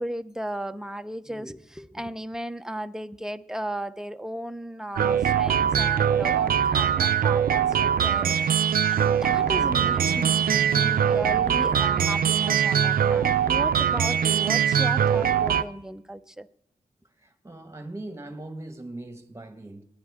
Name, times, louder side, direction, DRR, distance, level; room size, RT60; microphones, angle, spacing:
voice 1, 0.0-16.5, right 1 dB, 5° right, 0.7 m, -35 dB
sound 1, 5.0-15.6, right 8 dB, 80° right, 0.5 m, -22 dB
sound 2, 9.2-14.7, right 2 dB, 25° left, 7.8 m, -43 dB
voice 2, 17.2-19.8, right 2 dB, 20° right, 1.4 m, -40 dB
28.0 x 10.5 x 3.6 m
wide cardioid pair, 80°, 15 cm